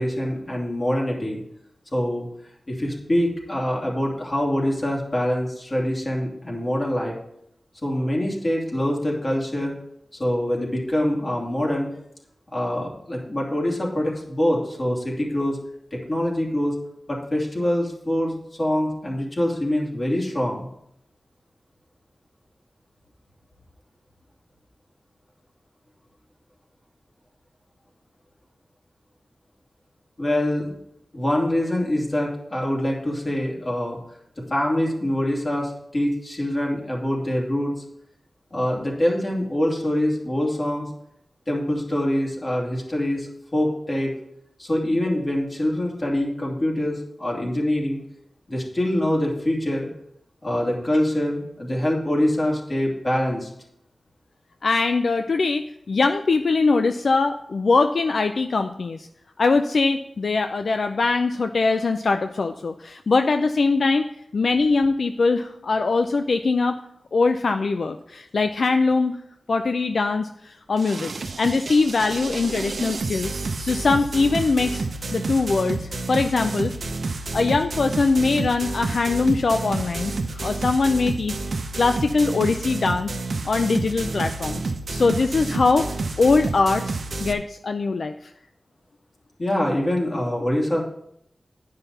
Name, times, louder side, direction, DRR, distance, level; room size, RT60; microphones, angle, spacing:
voice 1, 0.0-1.4 1.9-2.3 2.7-7.1 7.8-9.7 10.2-11.9 12.5-15.6 15.9-16.7 17.1-20.7 30.2-30.7 31.1-34.0 34.4-37.7 38.5-40.9 41.5-44.1 44.6-48.0 48.5-49.9 50.4-53.5 89.4-90.8, left 1 dB, 40° left, -2 dB, 2.7 m, -24 dB
voice 2, 54.6-59.1 59.4-64.1 64.3-66.8 67.1-69.2 69.5-71.1 71.4-76.7 77.3-81.3 81.8-83.1 83.5-85.9 86.2-88.1, left 3 dB, 75° left, 7 dB, 0.4 m, -22 dB
sound 1, 70.8-87.3, right 3 dB, 70° right, 0.7 m, -30 dB
10.0 x 5.7 x 5.4 m, 0.75 s
wide cardioid pair, 75°, 0 cm